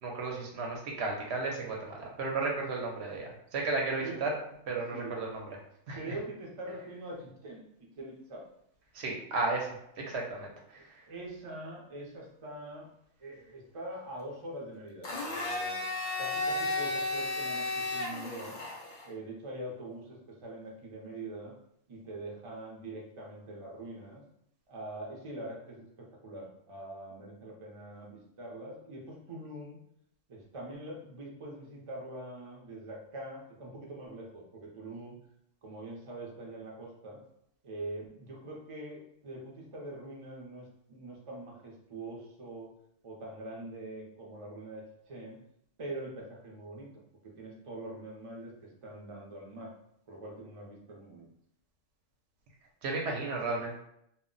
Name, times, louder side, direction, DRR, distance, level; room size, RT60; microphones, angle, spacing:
voice 1, 0.0-4.4 4.7-5.4 5.9-6.0 8.9-9.7 10.0-11.0 52.8-53.8, right 3 dB, 65° right, 0 dB, 0.8 m, -34 dB
voice 2, 5.9-7.7 8.0-8.4 10.7-12.9 13.2-15.8 16.2-18.6 19.0-21.5 21.9-24.2 24.7-29.8 30.3-35.2 35.6-37.2 37.6-42.7 43.0-45.4 45.8-49.7 50.1-51.3, right 1 dB, 40° right, -2 dB, 0.4 m, -43 dB
Domestic sounds home sounds, 15.0-19.1, left 2 dB, 55° left, 0.4 m, -33 dB
2.2 x 2.1 x 3.7 m, 0.73 s
omnidirectional pair, 1.3 m